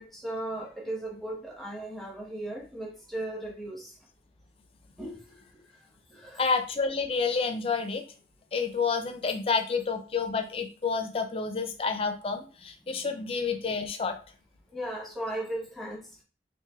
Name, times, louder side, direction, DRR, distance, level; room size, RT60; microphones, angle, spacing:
voice 1, 0.0-3.9 5.0-5.1 6.1-6.5 12.9-13.3 14.7-16.2, right 1 dB, ahead, -3 dB, 0.9 m, -37 dB
voice 2, 6.4-8.0 8.5-14.2, left 5 dB, 30° left, 6 dB, 0.4 m, -29 dB
3.3 x 2.5 x 3.4 m, 0.37 s
head